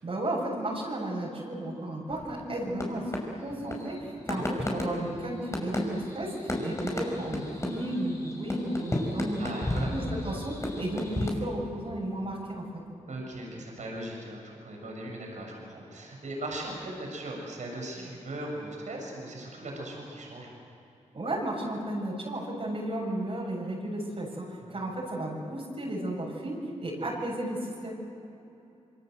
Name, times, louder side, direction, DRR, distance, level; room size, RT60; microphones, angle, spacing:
voice 1, 0.0-3.1 3.4-9.5 9.9-12.7 21.1-27.9, right 1 dB, 50° right, -3 dB, 7.3 m, -34 dB
sound 1, 2.1-11.3, left 1 dB, 25° left, 5.4 m, -33 dB
voice 2, 9.4-9.9 13.1-20.5 24.6-24.8, right 1 dB, 75° right, 0 dB, 7.1 m, -39 dB
27.5 x 25.0 x 8.0 m, 2.8 s
cardioid pair, 85°, 13 cm